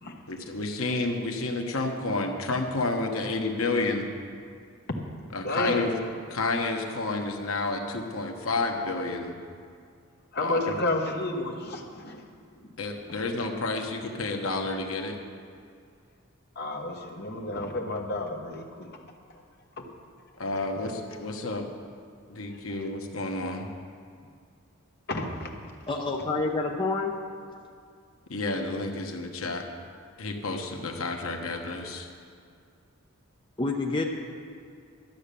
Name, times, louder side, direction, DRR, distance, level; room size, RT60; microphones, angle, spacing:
voice 1, 0.3-4.1 5.3-5.9 6.3-9.3 10.4-10.6 12.8-15.2 20.4-21.7 22.3-23.7 28.3-29.6 30.2-32.1, left 2 dB, 80° left, 3 dB, 1.2 m, -30 dB
voice 2, 5.4-5.9 10.3-12.2 16.6-19.0 19.8-19.9 25.1-25.6, left 2 dB, 50° left, 2 dB, 1.3 m, -31 dB
voice 3, 25.9-27.1 33.6-34.0, left 3 dB, 25° left, 0 dB, 0.7 m, -27 dB
12.0 x 8.7 x 6.8 m, 2.2 s
head